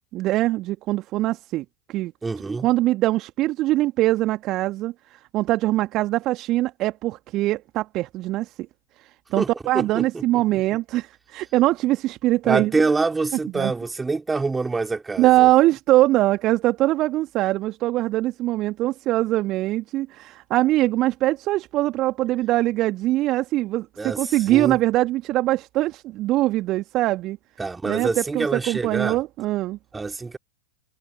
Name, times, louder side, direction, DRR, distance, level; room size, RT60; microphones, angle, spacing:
voice 1, 0.1-2.1 2.6-8.7 9.0-12.7 13.5-13.7 15.2-27.4 27.9-29.8, right 16 dB, 40° right, 2.0 m, -22 dB
voice 2, 2.2-2.7 9.4-10.2 10.5-10.6 12.4-15.5 24.0-24.8 27.6-29.2 29.9-30.4, right 3 dB, 10° right, 3.0 m, -26 dB
figure-of-eight pair, 90°, 0 cm